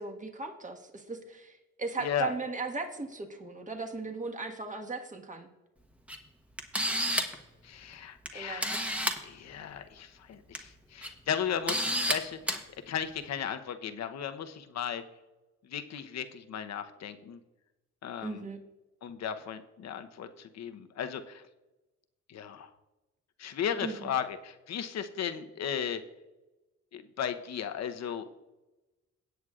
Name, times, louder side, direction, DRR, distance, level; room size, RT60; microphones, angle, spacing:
voice 1, 0.0-5.5 8.3-8.7 18.2-18.6 23.8-24.1, right 4 dB, 25° right, 3 dB, 1.6 m, -37 dB
voice 2, 2.0-2.3 7.6-8.8 9.2-12.6 12.9-15.0 15.6-17.4 18.0-18.5 19.0-21.4 22.3-22.7 23.4-26.0 26.9-28.3, left 8 dB, 60° left, 9 dB, 0.9 m, -35 dB
Camera, 6.1-6.2 6.6-7.4 8.3-8.4 8.6-9.2 10.3-10.6 11.0-11.1 11.7-12.2 12.5-12.6, equal, 5° right, 1.2 m, -29 dB
17.5 x 8.0 x 2.5 m, 1.1 s
cardioid pair, 90°, 30 cm